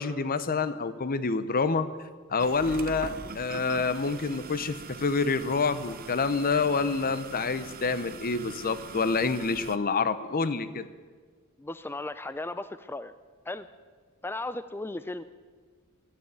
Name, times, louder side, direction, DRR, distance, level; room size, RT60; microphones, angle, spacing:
voice 1, 0.0-1.9 2.3-10.9, left 4 dB, 40° left, 13 dB, 0.7 m, -27 dB
sound 1, 2.4-9.8, right 4 dB, 45° right, 0.7 m, -42 dB
voice 2, 11.6-13.1 13.5-13.7 14.2-15.2, left 2 dB, 10° left, 13 dB, 0.4 m, -36 dB
14.0 x 9.7 x 8.9 m, 1.5 s
head